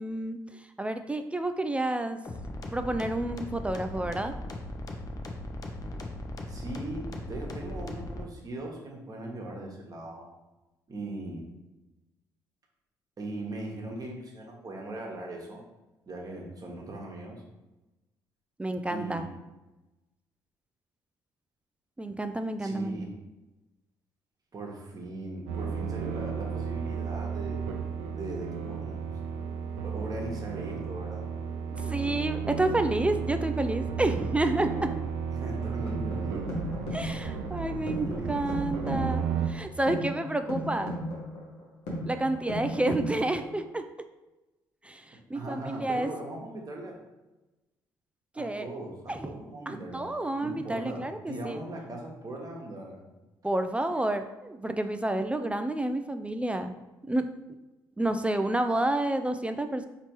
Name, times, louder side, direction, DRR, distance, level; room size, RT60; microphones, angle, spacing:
voice 1, 0.0-2.2 2.7-4.3 18.6-19.3 22.0-23.1 31.8-34.9 36.9-40.9 42.0-43.8 44.8-46.1 48.4-48.7 49.1-49.3 49.7-51.6 53.4-56.7 57.1-57.3 58.0-59.9, right 1 dB, 10° right, 8 dB, 0.3 m, -30 dB
sound 1, 2.2-8.2, left 1 dB, 35° left, 0.7 m, -38 dB
voice 2, 6.5-10.3 10.9-11.4 13.2-15.6 16.1-17.4 18.9-19.3 22.6-23.1 24.5-27.6 28.1-29.1 29.8-31.3 35.3-36.4 37.7-38.5 45.3-47.0 48.3-50.1 50.4-53.1, right 2 dB, 40° right, 0 dB, 1.2 m, -39 dB
sound 2, 25.5-39.5, right 6 dB, 80° right, 0.4 m, -33 dB
sound 3, 35.6-43.6, equal, 75° left, 1.1 m, -36 dB
4.2 x 3.0 x 3.0 m, 1.1 s
hypercardioid pair, 50°, 10 cm